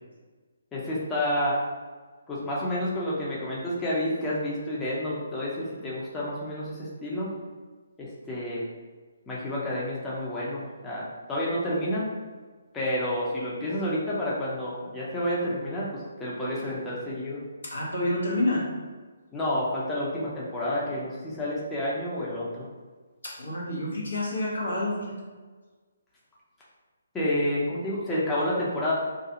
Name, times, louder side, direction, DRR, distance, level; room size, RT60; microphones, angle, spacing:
voice 1, 0.7-1.6 2.3-7.3 8.0-8.6 9.3-12.1 12.7-17.4 19.3-22.7 27.1-28.9, left 1 dB, 10° left, -7 dB, 0.5 m, -29 dB
voice 2, 17.6-18.7 23.2-25.2, left 1 dB, 75° left, -4 dB, 0.9 m, -28 dB
2.4 x 2.3 x 2.8 m, 1.4 s
figure-of-eight pair, 145°, 0 cm